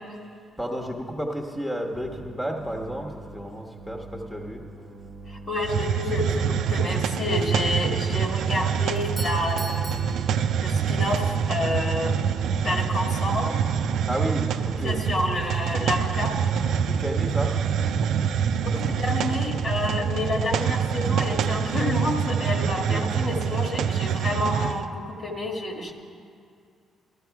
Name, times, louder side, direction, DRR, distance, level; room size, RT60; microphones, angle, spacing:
voice 1, 0.6-4.6 14.1-15.0 16.9-17.6 18.5-18.8 22.7-23.1, equal, 5° left, 0 dB, 1.2 m, -32 dB
sound 1, 2.0-21.7, right 2 dB, 55° right, 0.8 m, -44 dB
voice 2, 5.3-10.2 10.6-12.2 12.5-13.6 14.8-16.4 18.8-25.9, left 2 dB, 45° left, 2 dB, 1.7 m, -29 dB
Hiss, 5.6-24.8, right 7 dB, 80° right, 0.5 m, -25 dB
Doorbell, 8.9-11.1, right 2 dB, 15° right, 0.7 m, -41 dB
13.5 x 13.0 x 4.7 m, 2.4 s
cardioid pair, 90°, 0 cm